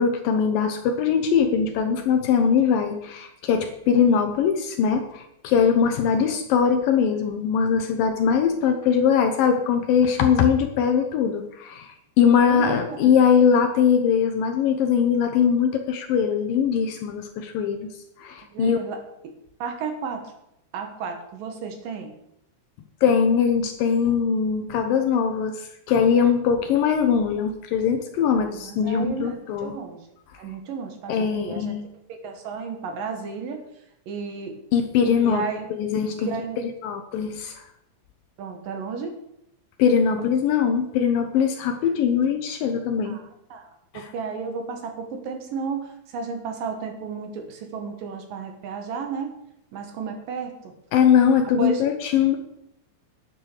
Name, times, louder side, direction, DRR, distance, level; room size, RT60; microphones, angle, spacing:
voice 1, 0.0-17.9 18.2-18.8 23.0-29.8 31.1-31.8 34.7-35.4 35.7-36.3 36.6-37.6 39.8-43.2 43.9-44.1 50.9-52.4, left 7 dB, 75° left, 6 dB, 2.3 m, -21 dB
voice 2, 12.4-13.2 18.5-19.3 19.6-20.2 20.7-22.2 28.3-30.0 30.4-31.8 32.1-33.7 34.1-34.6 35.2-35.7 36.2-36.6 38.4-39.2 40.2-40.3 43.0-49.4 49.7-50.7 51.6-51.8, right 5 dB, 65° right, 5 dB, 2.6 m, -33 dB
10.0 x 9.0 x 6.6 m, 0.81 s
omnidirectional pair, 4.7 m